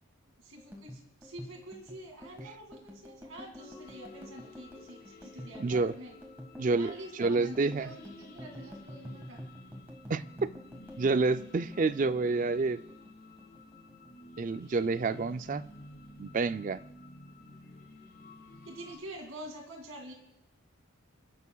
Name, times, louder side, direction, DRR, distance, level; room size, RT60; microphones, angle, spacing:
voice 1, 0.4-6.2 6.7-9.4 18.7-20.1, right 1 dB, 80° right, 2.2 m, -47 dB
sound 1, 0.6-13.1 13.4-14.4 14.7-15.1 15.4-16.1, equal, 10° right, 1.6 m, -48 dB
sound 2, 3.6-19.0, left 1 dB, 45° left, 1.7 m, -52 dB
voice 2, 5.6-5.9 6.6-6.9 7.2-7.9 10.1-10.5 11.0-12.8 14.4-15.7 16.2-16.8, right 3 dB, 35° right, 0.4 m, -28 dB
29.0 x 11.0 x 2.3 m
head